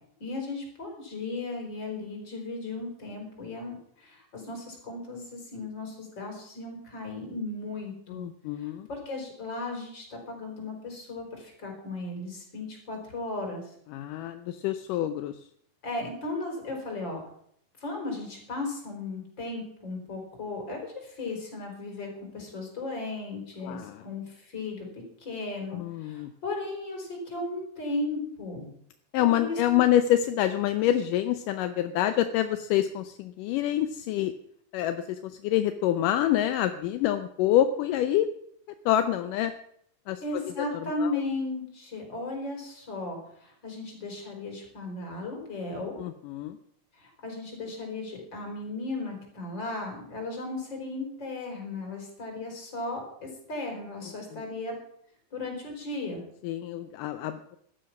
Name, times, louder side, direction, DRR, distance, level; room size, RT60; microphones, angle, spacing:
voice 1, 0.2-8.3 8.6-13.8 15.8-17.2 17.8-22.1 22.3-28.7 29.2-29.8 40.2-46.0 47.0-54.8 55.3-56.2, left 2 dB, 35° left, 2 dB, 5.1 m, -36 dB
voice 2, 8.1-8.9 13.9-15.3 23.6-24.0 25.7-26.3 29.1-34.3 34.7-38.3 38.9-39.5 40.1-41.1 46.0-46.6 54.3-54.4 56.4-57.6, left 12 dB, 80° left, 9 dB, 2.3 m, -27 dB
15.5 x 12.5 x 5.9 m, 0.68 s
omnidirectional pair, 3.8 m